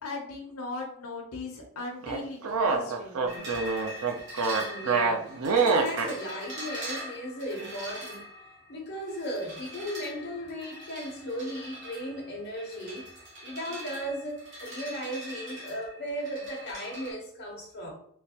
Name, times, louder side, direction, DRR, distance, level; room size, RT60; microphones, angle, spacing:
voice 1, 0.0-3.6, left 3 dB, 85° left, 0.8 m, -38 dB
sound 1, 2.0-6.1, right 4 dB, 75° right, 0.5 m, -26 dB
sound 2, 3.3-17.1, equal, 55° right, 1.0 m, -42 dB
voice 2, 4.5-8.3 8.7-13.1 13.4-17.9, equal, 50° left, 1.0 m, -36 dB
3.2 x 3.1 x 2.9 m
head